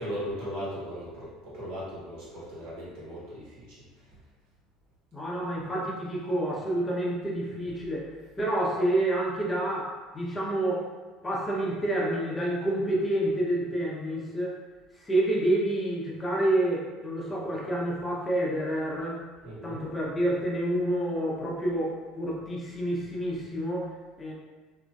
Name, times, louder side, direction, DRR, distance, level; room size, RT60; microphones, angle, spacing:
voice 1, 0.0-4.2 19.4-19.9, equal, 75° right, -8 dB, 1.3 m, -38 dB
voice 2, 5.1-8.1 8.4-10.8 11.2-14.5 15.1-19.2 19.6-23.9 24.2-24.3, right 1 dB, 20° left, -3 dB, 0.7 m, -28 dB
2.9 x 2.5 x 2.3 m, 1.3 s
supercardioid pair, 95°, 0 cm